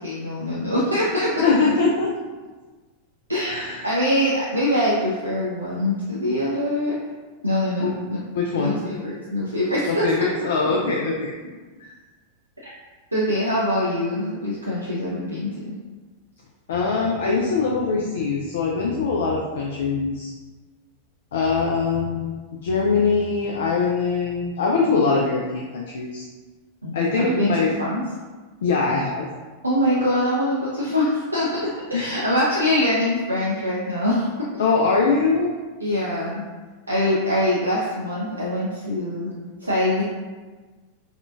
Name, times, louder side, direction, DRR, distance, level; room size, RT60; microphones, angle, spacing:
voice 1, 0.0-1.4 3.3-3.5 3.8-7.0 7.4-8.2 8.6-10.2 12.6-12.7 13.1-15.8 26.8-28.0 29.6-34.3 35.8-36.4 36.9-39.3 39.6-40.0, left 1 dB, 85° right, -6 dB, 0.4 m, -23 dB
voice 2, 1.4-2.1 3.4-3.9 7.8-7.9 8.3-8.8 9.9-11.3 11.8-11.9 16.7-20.3 21.3-22.3 22.6-26.3 26.9-27.7 28.6-29.3 31.9-32.1 34.6-35.5, left 4 dB, 60° left, -2 dB, 0.3 m, -22 dB
3.5 x 2.2 x 2.4 m, 1.3 s
figure-of-eight pair, 90°, 0 cm